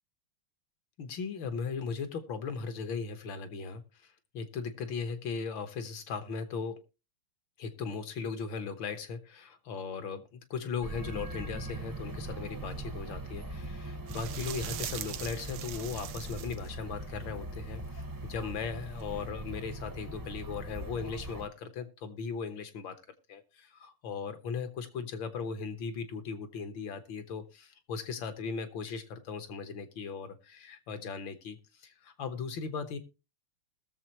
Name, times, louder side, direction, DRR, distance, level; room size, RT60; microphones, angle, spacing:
voice 1, 1.0-6.8 7.6-23.0 23.3-33.0, left 5 dB, 65° left, 8 dB, 1.9 m, -38 dB
sound 1, 10.8-21.5, right 2 dB, 15° right, 0.7 m, -41 dB
sound 2, 14.1-16.7 19.0-19.1, right 11 dB, 80° right, 1.5 m, -41 dB
20.5 x 7.0 x 2.9 m, 0.28 s
omnidirectional pair, 2.4 m